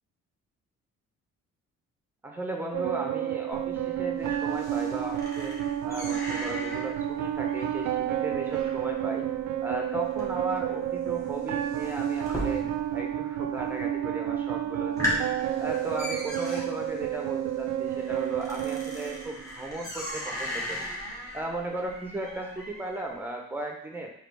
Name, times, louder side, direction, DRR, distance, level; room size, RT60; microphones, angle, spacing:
voice 1, 2.2-5.6 5.8-9.3 9.6-12.6 12.9-15.2 15.6-20.9 21.3-24.1, right 2 dB, 5° right, 1 dB, 0.8 m, -36 dB
sound 1, 2.7-19.7, right 11 dB, 70° right, 0.4 m, -30 dB
sound 2, 3.5-13.1 13.3-13.9 14.3-14.4 14.8-23.1, equal, 10° left, 1.3 m, -38 dB
3.9 x 3.1 x 3.3 m, 0.72 s
cardioid pair, 90°, 30 cm